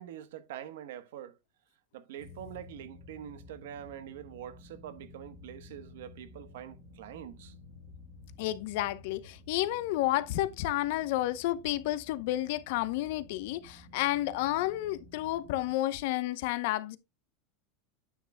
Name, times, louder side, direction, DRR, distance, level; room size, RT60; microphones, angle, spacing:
voice 1, 0.0-1.4 1.9-7.5, right 10 dB, 85° right, 1.1 m, -45 dB
sound 1, 2.2-15.8, left 3 dB, 40° right, 2.2 m, -53 dB
voice 2, 8.4-17.0, left 15 dB, 55° left, 0.7 m, -31 dB
9.8 x 8.6 x 2.2 m
supercardioid pair, 175°, 0 cm